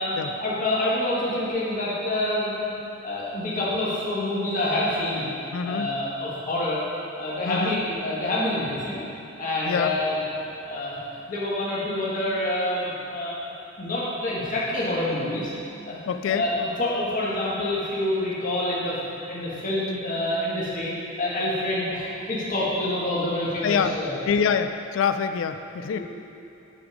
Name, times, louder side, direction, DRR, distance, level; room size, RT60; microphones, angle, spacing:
voice 1, 0.0-2.6 3.0-5.3 5.6-6.8 7.2-9.0 9.4-10.2 10.6-11.0 11.3-15.5 15.8-16.0 16.3-19.0 19.3-20.9 21.2-24.2 25.9-26.0, left 1 dB, 40° left, -7 dB, 1.6 m, -27 dB
voice 2, 5.5-5.9 7.5-7.8 9.6-10.0 16.1-16.4 23.6-24.0 24.3-26.0, left 6 dB, 70° left, 9 dB, 0.3 m, -25 dB
9.6 x 5.2 x 4.9 m, 2.7 s
head